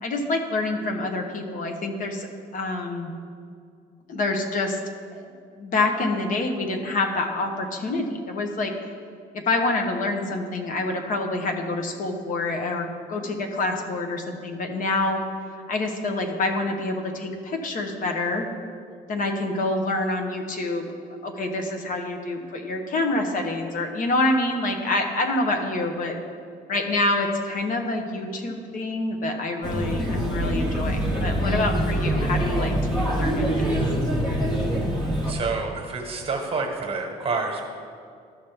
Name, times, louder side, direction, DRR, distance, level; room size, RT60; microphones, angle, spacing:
voice 1, 0.0-2.3 2.5-3.1 4.1-4.8 5.1-5.2 5.5-8.7 9.3-15.2 15.5-18.5 19.1-20.9 21.2-26.2 26.7-33.8, left 2 dB, 50° left, 3 dB, 1.0 m, -27 dB
Male speech man speaking / Child speech kid speaking / Chatter, 29.6-35.3, right 1 dB, 25° left, 1.3 m, -24 dB
voice 2, 35.3-37.6, right 4 dB, 35° right, 2 dB, 1.4 m, -28 dB
13.0 x 5.4 x 3.4 m, 2.3 s
cardioid pair, 110°, 17 cm